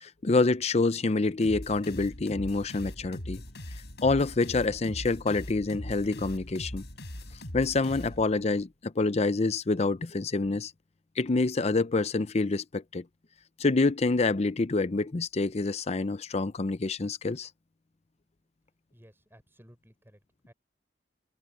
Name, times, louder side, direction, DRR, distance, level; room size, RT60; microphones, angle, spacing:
voice 1, 0.0-3.4 4.0-6.8 7.5-10.7 11.2-13.0 13.6-17.5, left 3 dB, 40° left, 0.6 m, -27 dB
sound 1, 1.4-8.6, equal, 70° left, 6.6 m, -41 dB
voice 2, 18.9-20.5, equal, 15° right, 5.3 m, -57 dB
head